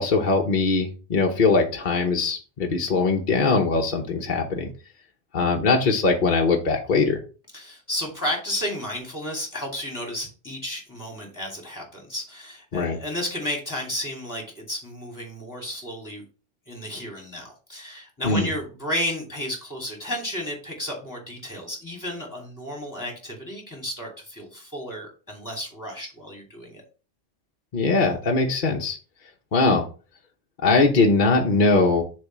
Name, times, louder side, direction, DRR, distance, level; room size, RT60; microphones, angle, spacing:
voice 1, 0.0-4.7 5.3-7.2 12.7-13.0 18.2-18.5 27.7-29.0 29.5-29.9 30.6-32.0, left 3 dB, 50° left, 1 dB, 1.1 m, -21 dB
voice 2, 7.5-16.2 16.7-26.8, left 1 dB, 15° left, 0 dB, 2.6 m, -32 dB
6.8 x 3.3 x 6.0 m, 0.35 s
omnidirectional pair, 1.2 m